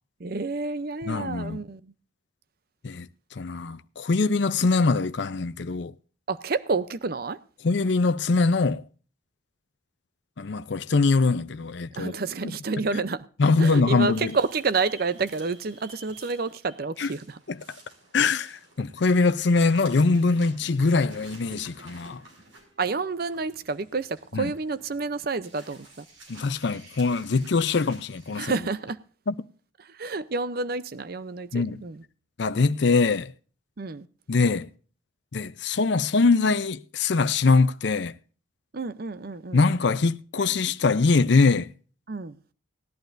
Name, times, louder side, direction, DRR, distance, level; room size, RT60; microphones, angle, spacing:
voice 1, 0.2-1.9 6.3-7.4 12.0-13.3 13.6-17.4 22.8-26.0 28.3-29.0 29.8-32.0 33.8-34.1 38.7-39.7 42.1-42.4, right 4 dB, 50° right, 0.6 m, -29 dB
voice 2, 1.0-1.6 2.8-5.9 7.6-8.8 10.4-12.1 12.4-12.6 13.4-14.3 17.0-17.1 17.5-17.6 18.1-22.2 24.3-24.5 26.3-28.5 29.3-29.4 31.5-31.8 32.4-33.3 34.3-34.7 35.3-38.1 39.5-41.7, left 4 dB, 60° left, 0.5 m, -23 dB
sound 1, 13.4-19.2 19.5-28.7, right 2 dB, 80° right, 5.7 m, -51 dB
19.0 x 11.5 x 2.6 m
head